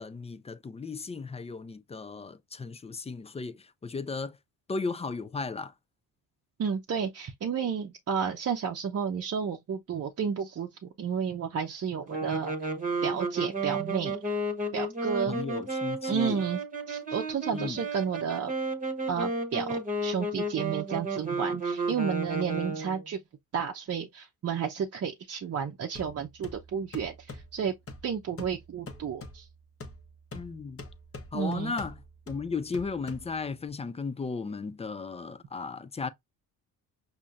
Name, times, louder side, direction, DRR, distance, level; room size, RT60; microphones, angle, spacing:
voice 1, 0.0-4.4 4.7-5.7 15.3-16.4 17.5-17.8 30.3-30.8 31.3-32.0 32.3-36.1, left 4 dB, 15° left, 0.4 m, -35 dB
voice 2, 6.6-12.5 13.0-14.2 14.7-15.4 16.1-16.6 16.9-18.5 19.1-23.2 23.5-27.7 28.0-29.4 31.3-31.7, right 7 dB, 40° right, 0.6 m, -32 dB
sound 1, 12.1-23.1, right 2 dB, 20° right, 1.0 m, -32 dB
sound 2, 26.0-33.7, left 2 dB, 35° left, 0.9 m, -46 dB
5.5 x 2.1 x 2.5 m
supercardioid pair, 75°, 39 cm